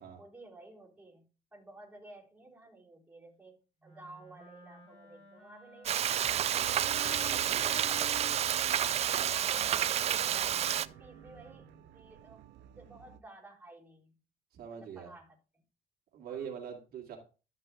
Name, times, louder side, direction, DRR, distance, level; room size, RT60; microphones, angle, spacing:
voice 1, 0.2-8.4 8.9-12.4 12.7-14.2 14.7-15.6 16.3-16.5, right 2 dB, 10° right, -4 dB, 3.5 m, -54 dB
Wind instrument woodwind instrument, 3.8-11.9, left 2 dB, 40° left, 4.3 m, -53 dB
Frying (food), 5.9-10.9, right 10 dB, 40° right, 0.4 m, -30 dB
sound 1, 6.1-13.2, right 12 dB, 85° right, 0.7 m, -50 dB
voice 2, 14.5-15.1 16.1-17.2, right 8 dB, 65° right, 0 dB, 2.7 m, -43 dB
12.5 x 6.0 x 3.6 m, 0.34 s
cardioid pair, 110°, 17 cm